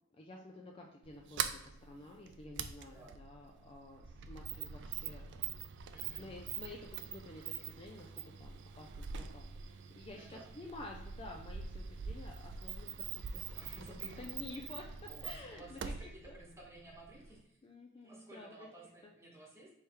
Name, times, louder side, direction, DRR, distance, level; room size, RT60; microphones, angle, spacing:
voice 1, 0.1-5.6 5.9-8.1 8.4-13.4 14.0-15.9 17.6-18.7 19.0-19.1, left 2 dB, 25° left, 1 dB, 0.4 m, -51 dB
Sliding door, 1.0-17.4, right 7 dB, 55° right, 0.3 m, -44 dB
voice 2, 2.8-3.2 5.9-6.3 10.1-10.5 13.4-14.8 15.1-17.6 18.0-19.7, right 1 dB, 10° right, -3 dB, 1.1 m, -55 dB
3.5 x 3.2 x 4.4 m, 0.82 s
head